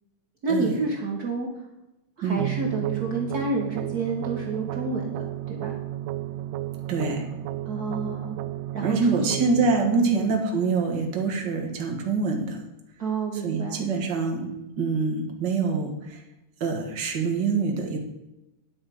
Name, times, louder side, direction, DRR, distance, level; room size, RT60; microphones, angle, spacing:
voice 1, 0.4-1.7 2.2-5.8 7.6-8.3 8.7-9.6 10.0-10.3 13.0-13.8, right 3 dB, 60° right, -1 dB, 0.9 m, -29 dB
sound 1, 2.4-11.4, right 14 dB, 90° right, 2.2 m, -33 dB
voice 2, 6.9-7.3 8.8-12.6 13.4-14.5 14.8-16.2 16.6-18.0, right 4 dB, 40° right, 2 dB, 1.8 m, -25 dB
10.5 x 7.1 x 5.0 m, 0.94 s
omnidirectional pair, 3.7 m